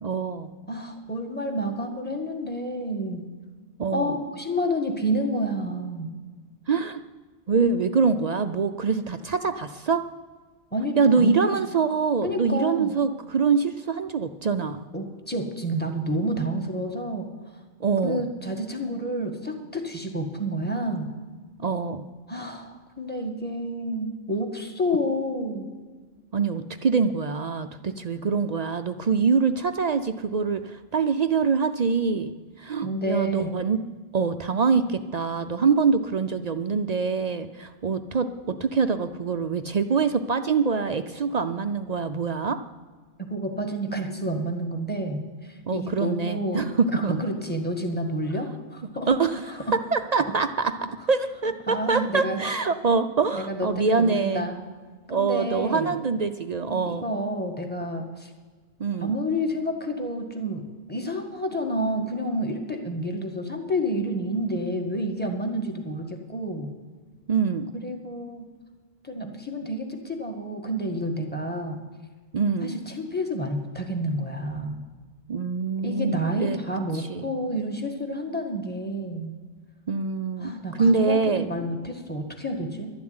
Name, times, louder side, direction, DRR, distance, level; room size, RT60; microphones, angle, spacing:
voice 1, 0.0-0.5 3.8-4.1 6.7-7.0 7.5-10.0 11.0-14.8 17.8-18.2 21.6-22.0 26.3-33.8 34.1-42.6 45.7-47.2 49.1-54.5 55.1-57.0 58.8-59.1 67.3-67.7 72.3-72.8 75.3-76.6 76.9-77.3 79.9-81.5, right 5 dB, 55° right, 9 dB, 0.5 m, -24 dB
voice 2, 0.7-3.3 3.9-6.1 10.7-11.4 12.2-12.9 14.9-17.3 18.0-21.1 22.3-25.7 32.8-33.6 43.2-49.1 51.7-52.4 53.3-54.6 55.1-56.0 56.7-58.3 59.0-66.7 67.8-68.5 69.0-71.8 72.6-74.8 75.8-79.3 80.4-82.9, equal, 10° left, 3 dB, 1.6 m, -29 dB
12.0 x 7.2 x 9.6 m, 1.4 s
omnidirectional pair, 1.2 m